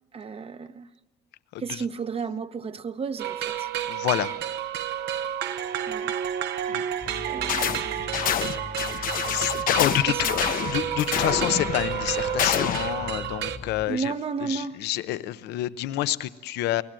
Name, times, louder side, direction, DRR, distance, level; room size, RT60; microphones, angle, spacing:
voice 1, 0.1-0.9 1.6-3.7 5.9-6.1 7.3-8.1 9.8-10.1 13.9-14.8, right 5 dB, 35° right, 0.9 m, -33 dB
voice 2, 1.5-1.8 3.9-4.4 6.7-6.8 9.0-14.1 14.4-16.8, left 14 dB, 85° left, 0.8 m, -28 dB
sound 1, 3.2-13.6, right 10 dB, 80° right, 1.1 m, -30 dB
sound 2, 7.0-13.9, left 4 dB, 30° left, 1.3 m, -41 dB
sound 3, 7.5-7.8 8.1-12.9, left 9 dB, 55° left, 0.9 m, -27 dB
28.5 x 19.5 x 7.6 m
cardioid pair, 110°, 17 cm